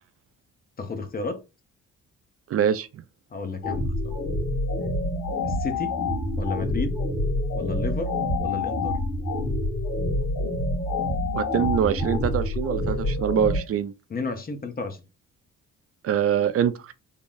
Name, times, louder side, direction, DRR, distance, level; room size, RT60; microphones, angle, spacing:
voice 1, 0.8-1.4 3.3-4.2 5.5-6.0 6.4-7.0 7.5-8.1 8.4-9.0 14.1-15.0, left 4 dB, 30° left, 0.7 m, -32 dB
voice 2, 2.5-3.0 11.3-13.9 16.0-16.9, right 9 dB, 50° right, 0.4 m, -24 dB
sound 1, 3.6-13.6, left 2 dB, 70° left, 1.8 m, -27 dB
3.7 x 2.0 x 3.8 m
cardioid pair, 90°, 30 cm